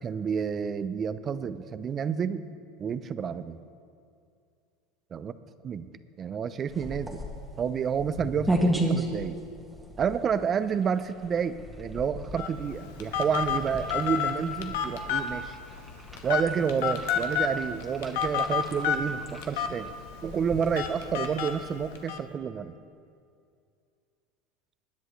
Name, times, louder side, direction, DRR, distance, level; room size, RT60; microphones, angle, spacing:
voice 1, 0.0-2.4 2.8-3.6 5.1-5.3 5.6-5.9 6.2-7.2 7.6-9.4 10.0-15.6 16.2-19.9 20.2-22.7, right 7 dB, 30° right, 13 dB, 0.5 m, -29 dB
sound 1, 6.7-21.2, right 1 dB, 5° right, 1.7 m, -35 dB
Telephone, 12.4-22.2, left 7 dB, 80° left, 1.2 m, -31 dB
24.0 x 10.5 x 3.2 m, 2.4 s
supercardioid pair, 125°, 0 cm